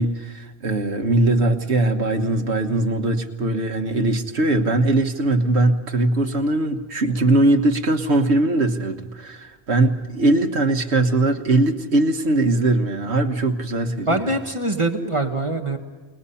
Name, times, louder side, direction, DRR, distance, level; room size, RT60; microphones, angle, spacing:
voice 1, 0.0-14.3, right 2 dB, 85° right, 5 dB, 1.7 m, -20 dB
voice 2, 14.1-15.8, right 2 dB, 30° right, 5 dB, 1.6 m, -23 dB
30.0 x 20.0 x 5.7 m, 1.4 s
omnidirectional pair, 1.1 m